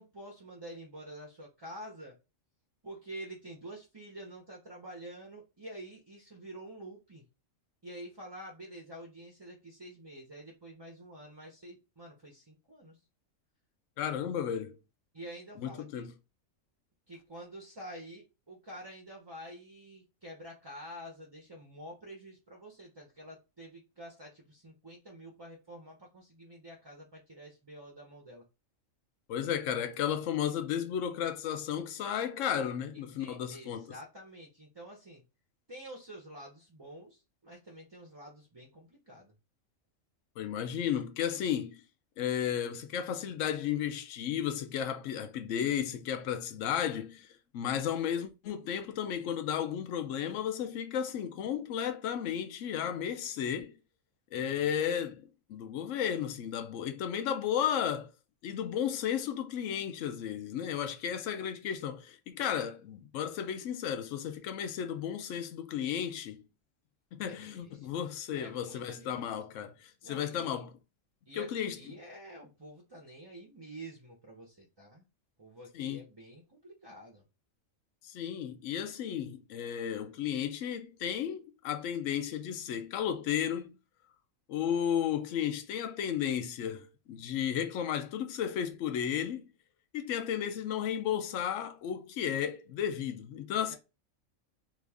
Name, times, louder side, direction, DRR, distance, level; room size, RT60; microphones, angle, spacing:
voice 1, 0.0-2.2 2.8-7.2 7.8-13.0 15.1-16.1 17.1-28.4 32.9-35.2 35.7-39.3 54.5-55.0 67.3-67.9 68.4-69.3 70.0-70.6 71.3-75.0 75.4-77.2 93.7-93.8, right 1 dB, 30° right, 0.5 m, -48 dB
voice 2, 14.0-14.8 15.6-16.1 29.3-33.9 40.4-41.8 42.2-53.8 54.3-58.1 58.4-66.4 67.1-70.7 71.3-71.8 75.7-76.0 78.0-83.7 84.5-89.5 89.9-93.8, left 9 dB, 75° left, 0.9 m, -34 dB
3.0 x 2.5 x 3.4 m
omnidirectional pair, 1.4 m